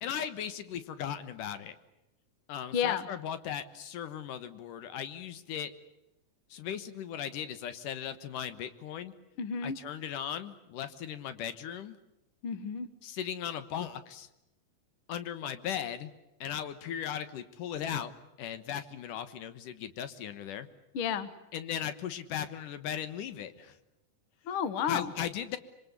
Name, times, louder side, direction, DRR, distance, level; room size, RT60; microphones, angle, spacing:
voice 1, 0.0-1.8 2.5-5.7 6.5-9.1 9.6-12.0 13.0-14.3 15.1-16.1 16.4-18.1 18.4-20.7 21.5-23.8 24.9-25.6, left 9 dB, 80° left, 11 dB, 2.8 m, -37 dB
voice 2, 2.7-3.1 9.4-9.8 12.4-12.9 20.9-21.3 24.5-25.1, left 7 dB, 50° left, 12 dB, 1.9 m, -31 dB
26.0 x 24.0 x 8.2 m, 0.91 s
omnidirectional pair, 3.8 m